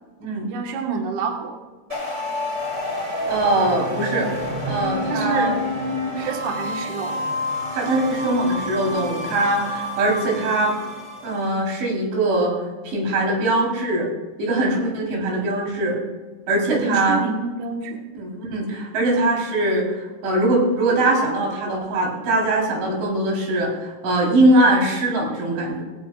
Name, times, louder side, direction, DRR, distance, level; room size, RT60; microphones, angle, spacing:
voice 1, 0.5-1.6 5.1-5.6 6.2-7.2 16.7-18.1, right 5 dB, 60° right, 2 dB, 2.3 m, -28 dB
sound 1, 1.9-11.5, left 1 dB, 15° right, 3.2 m, -28 dB
voice 2, 3.3-4.3 4.7-5.5 7.7-10.7 11.2-12.5 12.8-14.1 14.4-16.0 16.5-17.2 18.2-19.8 20.2-25.8, right 2 dB, 80° right, -2 dB, 6.5 m, -21 dB
20.0 x 17.0 x 2.5 m, 1.3 s
omnidirectional pair, 5.4 m